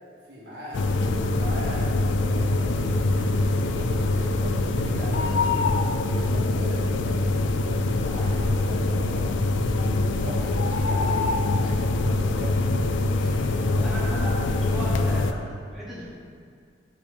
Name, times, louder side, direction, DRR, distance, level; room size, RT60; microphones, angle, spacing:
voice 1, 0.2-5.8 6.1-9.8 10.1-12.6 13.1-13.9 14.4-15.0, right 1 dB, 60° right, -6 dB, 1.9 m, -40 dB
sound 1, 0.7-15.3, left 2 dB, 85° left, 0.4 m, -24 dB
sound 2, 0.7-11.1, right 2 dB, 90° right, 1.5 m, -41 dB
voice 2, 13.8-16.1, equal, ahead, -9 dB, 1.3 m, -36 dB
7.3 x 4.7 x 5.0 m, 2.2 s
head